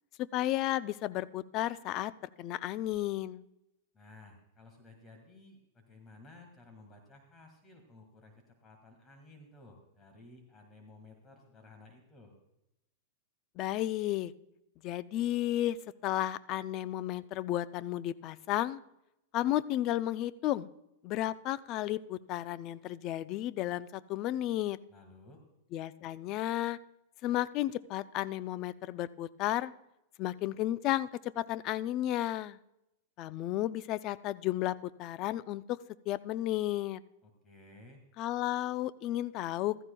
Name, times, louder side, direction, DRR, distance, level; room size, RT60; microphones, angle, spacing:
voice 1, 0.2-2.1 2.4-3.4 13.6-14.3 14.8-15.8 16.0-18.8 19.3-20.7 21.0-24.8 25.7-26.8 27.2-29.7 30.2-32.6 33.2-35.8 36.1-37.0 38.2-39.8, left 14 dB, 35° left, 16 dB, 0.4 m, -33 dB
voice 2, 3.9-12.3 24.9-25.5 37.2-38.0, left 2 dB, 20° left, 4 dB, 1.8 m, -56 dB
15.5 x 14.0 x 2.2 m, 0.86 s
supercardioid pair, 150°, 0 cm